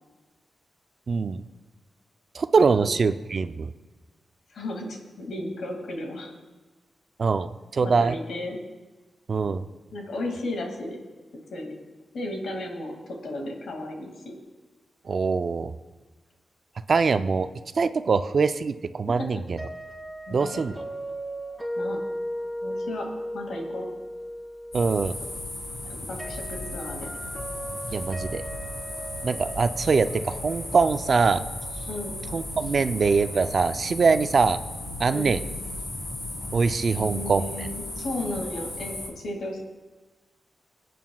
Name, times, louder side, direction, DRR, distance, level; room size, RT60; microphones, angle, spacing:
voice 1, 1.1-1.4 2.3-3.7 7.2-8.2 9.3-9.6 15.1-15.7 16.9-17.5 17.8-19.6 20.3-20.7 24.7-25.1 27.9-28.4 29.2-31.4 32.3-34.6 35.0-35.4 36.5-37.4, right 4 dB, 55° right, 11 dB, 0.5 m, -23 dB
voice 2, 2.6-2.9 4.5-6.3 7.8-8.6 9.9-11.0 11.5-11.7 12.1-12.9 13.2-14.3 19.1-19.4 20.3-20.6 21.8-22.0 22.6-23.1 23.3-23.9 25.9-27.1 31.9-32.1 35.1-35.4 36.9-39.6, left 1 dB, 90° left, 1 dB, 2.2 m, -34 dB
sound 1, 19.6-32.4, equal, 5° left, 4.4 m, -37 dB
sound 2, 24.7-39.1, left 2 dB, 45° left, 4.1 m, -36 dB
25.5 x 9.2 x 2.4 m, 1.2 s
cardioid pair, 75°, 0 cm